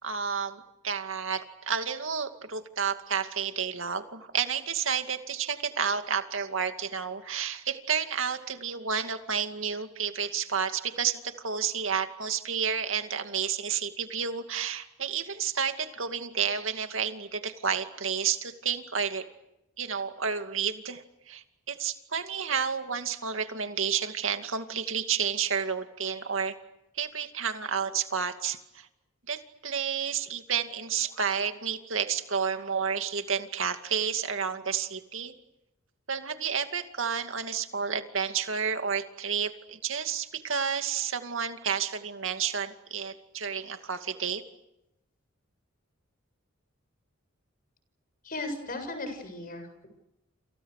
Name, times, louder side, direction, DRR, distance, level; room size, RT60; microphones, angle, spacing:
voice 1, 0.0-19.3 19.8-26.6 26.9-28.9 29.3-35.3 36.1-44.4, right 7 dB, 65° right, 7 dB, 2.4 m, -31 dB
voice 2, 48.2-49.9, left 2 dB, 45° left, 7 dB, 7.3 m, -36 dB
29.0 x 28.5 x 6.6 m, 0.90 s
head